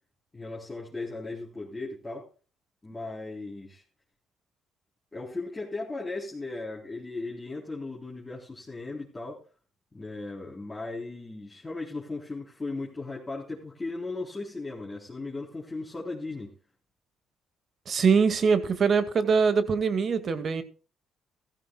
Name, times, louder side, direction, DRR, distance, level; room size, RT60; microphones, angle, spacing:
voice 1, 0.3-2.3 2.8-3.8 5.1-9.4 9.9-16.5, left 3 dB, 20° left, 3.9 m, -37 dB
voice 2, 17.9-20.6, right 5 dB, 50° right, 2.0 m, -23 dB
15.0 x 15.0 x 2.3 m
supercardioid pair, 75°, 0 cm